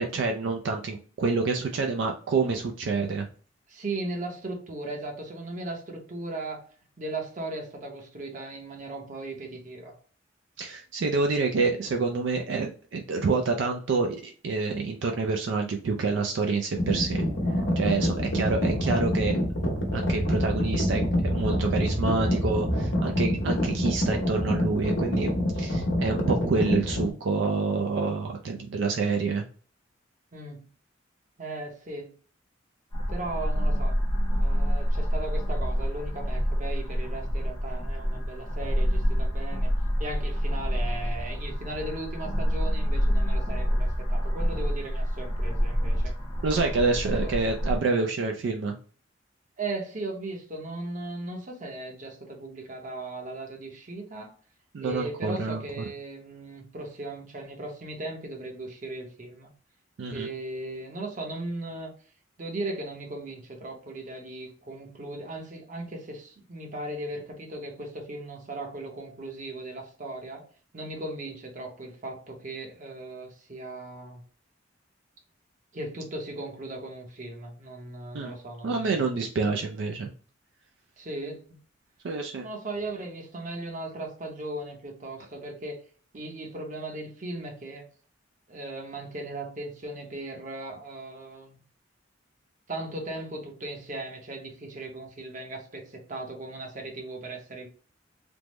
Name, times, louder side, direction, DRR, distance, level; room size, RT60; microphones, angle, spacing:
voice 1, 0.0-3.3 10.6-17.2 17.8-19.4 19.9-29.4 46.4-48.8 54.7-55.8 60.0-60.3 78.1-78.3 78.6-80.1 82.0-82.5, right 4 dB, 70° right, 3 dB, 0.4 m, -27 dB
voice 2, 3.7-6.6 7.0-9.9 30.3-30.7 31.4-32.1 33.1-34.0 34.3-39.7 40.0-46.1 47.2-47.3 49.6-54.3 54.8-59.5 60.1-61.9 62.4-70.4 70.7-74.2 75.7-79.1 81.0-81.4 82.4-85.8 86.1-87.8 88.5-91.6 92.7-97.7, right 2 dB, 40° right, 2 dB, 0.8 m, -37 dB
sound 1, 16.8-27.1, equal, 85° left, 0.9 m, -26 dB
sound 2, 32.9-47.8, equal, 25° left, 0.7 m, -27 dB
3.4 x 2.0 x 3.0 m, 0.42 s
head